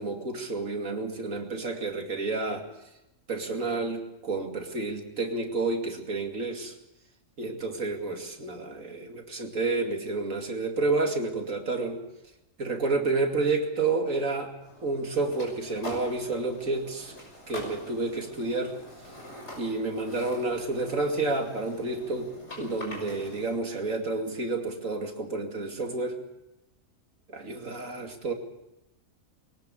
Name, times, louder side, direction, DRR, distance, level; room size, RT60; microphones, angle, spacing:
voice 1, 0.0-2.7 3.3-6.7 7.4-12.0 12.6-14.5 14.8-17.1 17.5-18.7 19.6-22.3 22.6-26.2 27.3-28.3, right 3 dB, 75° right, 3 dB, 3.0 m, -30 dB
sound 1, 14.6-23.6, left 1 dB, 55° left, 6.4 m, -44 dB
22.5 x 18.5 x 6.8 m, 0.92 s
omnidirectional pair, 1.4 m